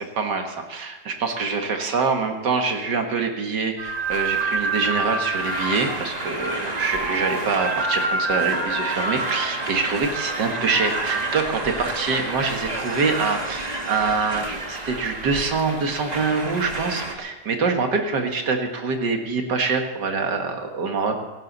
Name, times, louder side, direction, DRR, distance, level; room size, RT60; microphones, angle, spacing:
voice 1, 0.0-21.2, right 4 dB, 75° right, 4 dB, 2.3 m, -25 dB
sound 1, 3.8-17.1, right 2 dB, 25° right, 1.6 m, -28 dB
17.5 x 16.5 x 4.1 m, 1.2 s
omnidirectional pair, 1.9 m